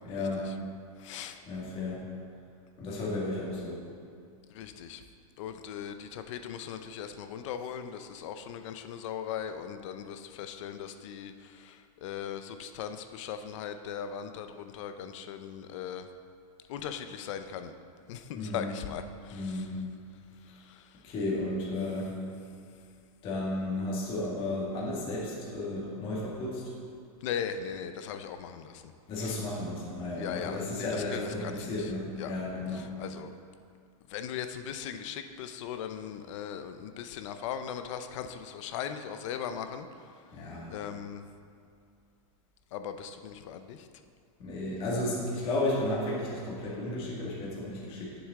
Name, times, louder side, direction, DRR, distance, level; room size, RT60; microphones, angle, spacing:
voice 1, 0.0-0.5 1.5-2.0 2.8-3.8 18.3-18.7 19.3-19.8 21.0-22.1 23.2-26.6 29.1-32.9 40.3-40.7 44.4-48.2, left 2 dB, 30° left, -5 dB, 1.8 m, -33 dB
voice 2, 1.0-1.4 4.5-5.0 5.4-16.1 16.7-17.7 18.1-19.7 20.4-21.0 27.2-28.9 29.2-29.4 30.1-31.9 32.2-32.3 32.7-33.3 34.1-39.9 40.7-41.3 42.7-43.9, left 8 dB, 55° left, 9 dB, 0.6 m, -39 dB
9.5 x 7.0 x 3.7 m, 2.4 s
supercardioid pair, 155°, 19 cm